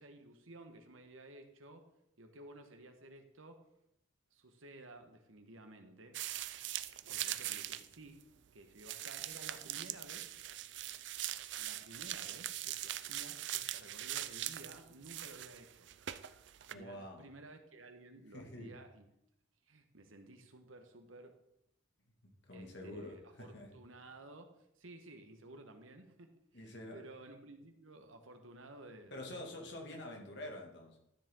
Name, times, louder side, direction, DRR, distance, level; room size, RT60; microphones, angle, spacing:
voice 1, 0.0-1.9 2.2-3.7 4.3-6.6 7.0-8.2 8.5-10.3 11.6-15.9 16.7-19.0 19.6-21.4 22.5-24.5 24.8-30.0, right 2 dB, 80° right, 6 dB, 1.4 m, -55 dB
sound 1, 6.1-8.2 8.8-16.7, right 13 dB, 60° right, 0.5 m, -41 dB
voice 2, 16.7-17.3 18.3-18.8 22.2-23.7 26.5-27.0 29.1-31.0, left 1 dB, 60° left, 1 dB, 2.3 m, -47 dB
13.0 x 7.7 x 3.8 m, 0.78 s
head